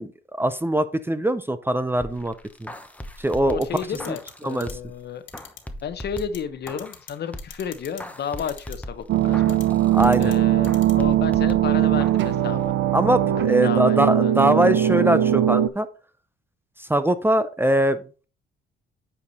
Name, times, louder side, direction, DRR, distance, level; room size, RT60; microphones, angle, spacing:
voice 1, 0.0-2.3 2.6-2.7 3.2-3.7 4.1-4.2 4.4-4.7 9.9-10.3 12.9-15.9 16.8-18.2, right 1 dB, 10° right, 12 dB, 0.6 m, -22 dB
sound 1, 2.0-5.0 5.3-7.0 7.3-10.3 10.7-12.3 12.6-12.7, left 1 dB, 5° left, 0.9 m, -39 dB
voice 2, 3.4-5.2 5.8-9.6 10.2-12.7 13.4-14.6, left 7 dB, 55° left, 12 dB, 0.9 m, -32 dB
sound 2, 3.6-4.3 4.6-4.7 5.3-5.6 6.2-6.4 6.7-7.1 7.4-8.0 8.4-8.8 9.5-9.6 10.0-10.3 10.6-10.9, left 10 dB, 75° left, 1.4 m, -41 dB
sound 3, 9.1-15.7, right 12 dB, 70° right, 0.6 m, -20 dB
8.7 x 4.8 x 4.0 m, 0.36 s
cardioid pair, 90°, 20 cm